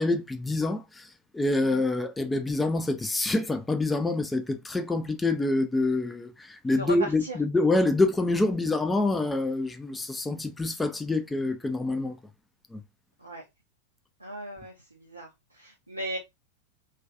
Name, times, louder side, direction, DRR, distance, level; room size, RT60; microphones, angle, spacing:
voice 1, 0.0-12.2 12.7-12.8, left 2 dB, 10° left, 0.4 m, -26 dB
voice 2, 14.2-15.3 15.5-16.2, equal, 85° right, 0.5 m, -37 dB
2.3 x 2.2 x 2.5 m
figure-of-eight pair, 90°, 0 cm